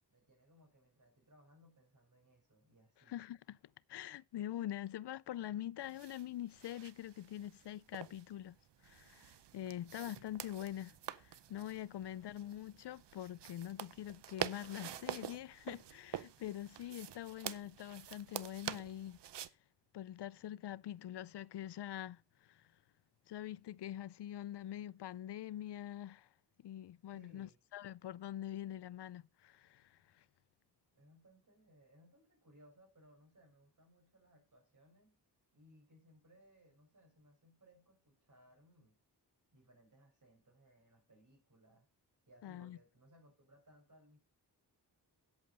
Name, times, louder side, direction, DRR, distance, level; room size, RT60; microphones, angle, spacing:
voice 1, 0.1-3.1 27.1-27.6 30.9-35.2 35.5-39.0 39.5-41.9 42.3-44.2, equal, 50° right, 6.5 m, -65 dB
voice 2, 3.1-3.6 3.9-8.6 8.8-19.2 19.9-22.7 23.3-26.3 26.6-30.2 42.4-42.8, left 12 dB, 80° left, 0.5 m, -45 dB
sound 1, 5.8-19.5, right 10 dB, 85° right, 0.7 m, -47 dB
9.0 x 8.3 x 5.3 m
wide cardioid pair, 75°, 40 cm